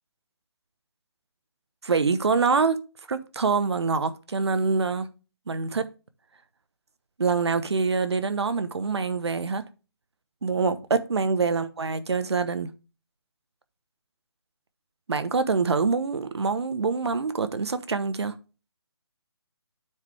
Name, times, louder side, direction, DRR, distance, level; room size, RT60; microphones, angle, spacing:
voice 1, 1.8-2.8 3.1-5.1 5.5-5.8 7.2-9.6 10.4-12.7 15.1-18.3, right 4 dB, 75° right, 1.1 m, -25 dB
9.8 x 4.9 x 3.4 m
hypercardioid pair, 160°, 14 cm